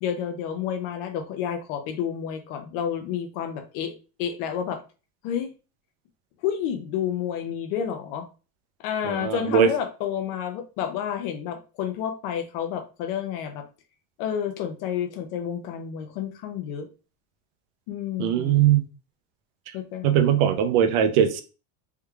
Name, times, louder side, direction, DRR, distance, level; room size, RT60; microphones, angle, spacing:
voice 1, 0.0-4.8 5.2-5.5 6.4-8.3 8.8-13.6 14.2-16.9 17.9-18.6 19.7-20.4, left 8 dB, 45° left, 0.5 m, -30 dB
voice 2, 9.1-9.7 18.2-18.8 20.0-21.4, right 9 dB, 60° right, 0.6 m, -20 dB
3.5 x 3.0 x 2.3 m
cardioid pair, 175°, 40 cm